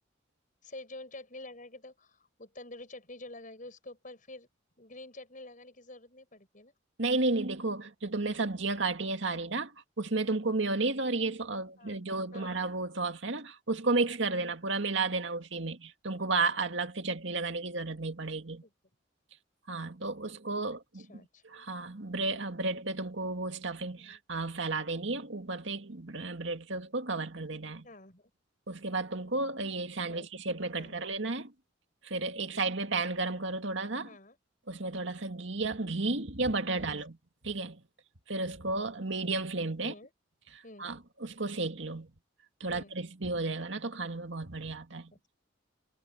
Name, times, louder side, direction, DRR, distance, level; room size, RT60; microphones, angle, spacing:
voice 1, 0.6-4.5 4.8-6.7 11.8-12.6 18.6-18.7 20.7-21.4 24.0-24.2 27.8-28.3 30.1-30.3 30.8-31.0 34.0-34.4 36.7-37.0 39.8-40.1 40.6-40.8 42.7-42.9 45.1-45.2, left 2 dB, 40° left, 7.6 m, -48 dB
voice 2, 7.0-9.7 10.0-18.6 19.7-21.1 21.4-27.9 28.7-31.5 32.0-34.1 34.7-37.2 37.4-37.8 38.3-39.9 40.8-42.1 42.6-45.1, right 3 dB, 70° right, 2.2 m, -33 dB
head